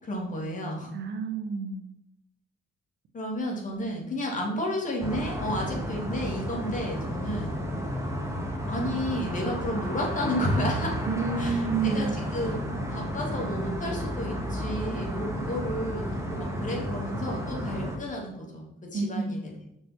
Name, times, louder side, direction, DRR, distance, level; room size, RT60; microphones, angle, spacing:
voice 1, 0.0-0.9 3.1-7.5 8.7-11.0 11.4-19.6, left 1 dB, 40° left, -1 dB, 3.2 m, -32 dB
voice 2, 0.9-1.8 11.1-12.1 18.9-19.4, right 5 dB, 60° right, 6 dB, 1.3 m, -29 dB
sound 1, 5.0-18.0, equal, 15° right, 2.2 m, -32 dB
6.4 x 6.3 x 4.6 m, 0.80 s
cardioid pair, 90°, 20 cm